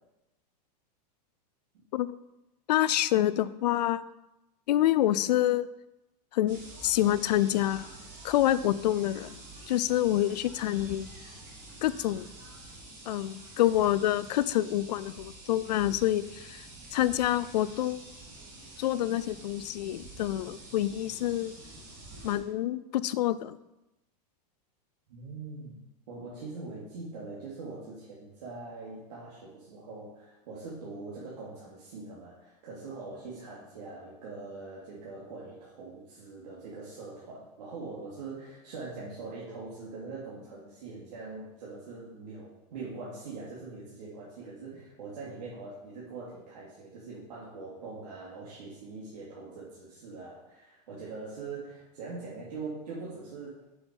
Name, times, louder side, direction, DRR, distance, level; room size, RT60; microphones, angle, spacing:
voice 1, 2.7-4.0 4.7-5.7 6.3-7.9 8.2-9.4 9.7-11.1 11.8-12.3 13.1-18.0 18.8-21.5 22.2-23.6, left 13 dB, 80° left, 16 dB, 0.5 m, -27 dB
sound 1, 6.5-22.4, right 2 dB, 40° right, 2.6 m, -48 dB
voice 2, 25.1-25.8 26.1-53.6, right 3 dB, 80° right, -7 dB, 2.9 m, -42 dB
7.9 x 6.3 x 5.4 m, 0.95 s
supercardioid pair, 160°, 21 cm